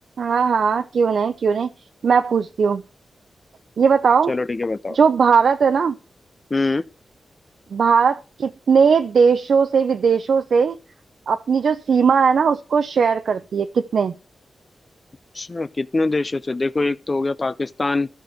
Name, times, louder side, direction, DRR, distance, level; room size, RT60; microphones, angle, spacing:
voice 1, 0.2-1.7 2.0-2.8 3.8-4.3 4.9-6.0 7.7-10.8 11.3-14.2, right 6 dB, 65° right, 0.7 m, -18 dB
voice 2, 4.3-5.0 6.5-6.8 15.3-18.1, left 3 dB, 25° left, 0.5 m, -23 dB
13.5 x 6.1 x 7.9 m
wide cardioid pair, 150°, 0 cm